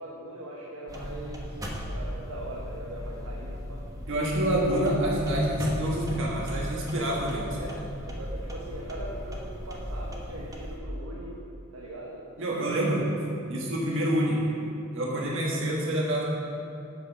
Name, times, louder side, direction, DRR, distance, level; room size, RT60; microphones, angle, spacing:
voice 1, 0.0-3.8 7.5-11.4 11.7-12.3, right 1 dB, 85° right, -4 dB, 1.1 m, -41 dB
sound 1, 0.9-10.8, equal, 15° right, 1.0 m, -37 dB
voice 2, 4.1-7.5 12.4-13.1 13.5-14.4 14.9-16.3, right 1 dB, 65° right, -4 dB, 1.4 m, -27 dB
7.4 x 6.1 x 6.2 m, 2.6 s
head